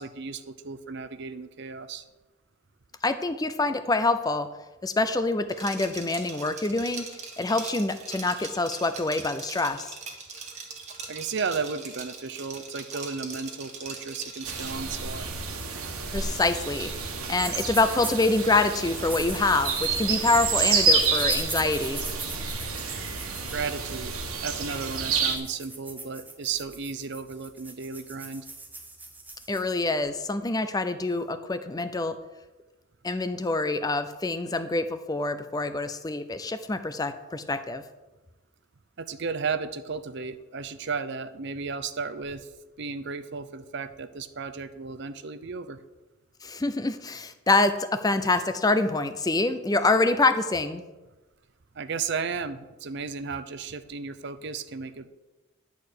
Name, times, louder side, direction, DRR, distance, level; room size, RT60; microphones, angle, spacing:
voice 1, 0.0-2.0 11.1-15.3 23.5-24.1 24.4-28.5 39.0-42.5 42.8-45.8 51.7-55.1, right 5 dB, 55° right, 11 dB, 0.6 m, -34 dB
voice 2, 3.0-4.5 4.8-10.0 16.1-16.9 17.3-22.0 29.5-32.2 33.0-37.8 46.4-50.8, left 2 dB, 20° left, 10 dB, 0.5 m, -26 dB
Liquid, 5.5-14.9, right 5 dB, 30° right, 1.4 m, -41 dB
sound 1, 14.4-25.4, right 4 dB, 85° right, 1.5 m, -29 dB
sound 2, 17.4-18.4 18.8-29.7, right 3 dB, 10° right, 0.8 m, -41 dB
11.0 x 4.8 x 8.1 m, 1.1 s
head